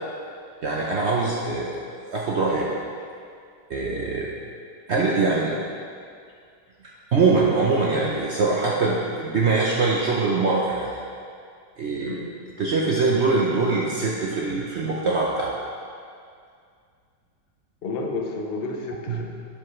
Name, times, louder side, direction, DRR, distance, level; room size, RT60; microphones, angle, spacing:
voice 1, 0.6-1.7 2.1-2.7 3.7-4.3 4.9-5.5 7.1-11.0 11.8-12.2 12.6-15.5 19.1-19.3, right 3 dB, 60° right, -4 dB, 0.7 m, -23 dB
voice 2, 17.8-19.3, left 3 dB, 55° left, 1 dB, 0.6 m, -31 dB
11.0 x 5.3 x 3.2 m, 2.3 s
omnidirectional pair, 2.0 m